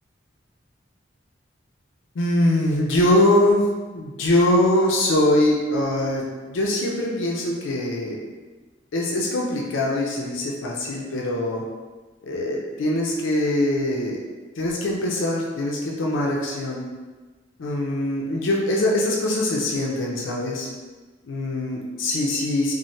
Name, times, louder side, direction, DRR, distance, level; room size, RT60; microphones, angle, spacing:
voice 1, 2.1-3.7 3.9-8.2 8.9-11.6 12.2-14.2 14.6-16.9 17.6-20.7 21.2-22.7, left 1 dB, 80° left, -2 dB, 0.5 m, -22 dB
3.1 x 2.1 x 2.6 m, 1.3 s
head